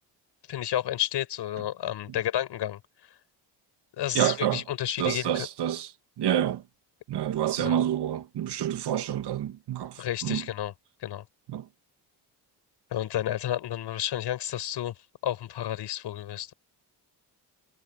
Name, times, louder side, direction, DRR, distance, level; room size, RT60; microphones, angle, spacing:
voice 1, 0.5-2.8 4.0-5.3 7.6-7.8 10.0-10.7 11.0-11.2 12.9-14.9 15.2-16.5, left 12 dB, 75° left, 5.9 m, -31 dB
voice 2, 4.1-4.6 5.0-5.9 6.2-6.6 7.1-10.4 11.5-11.6, right 11 dB, 75° right, 2.3 m, -28 dB
cardioid pair, 125°, 41 cm